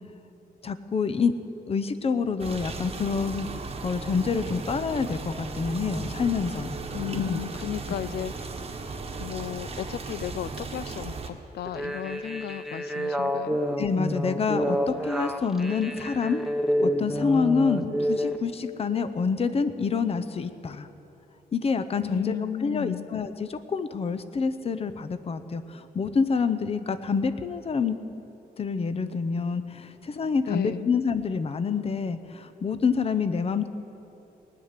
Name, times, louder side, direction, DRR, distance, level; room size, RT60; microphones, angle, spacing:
voice 1, 0.6-1.3 1.7-3.5 3.8-6.8 7.1-7.4 13.8-16.4 16.8-20.9 21.5-28.0 28.6-33.7, left 5 dB, 40° left, 11 dB, 0.7 m, -27 dB
sound 1, 2.4-11.3, right 4 dB, 35° right, 1.2 m, -36 dB
voice 2, 6.9-8.5 9.2-13.6 22.0-23.0 30.5-30.9, left 12 dB, 85° left, 17 dB, 0.4 m, -34 dB
sound 2, 11.7-18.4, equal, ahead, 0.9 m, -28 dB
19.5 x 6.7 x 9.7 m, 3.0 s
wide cardioid pair, 130°, 16 cm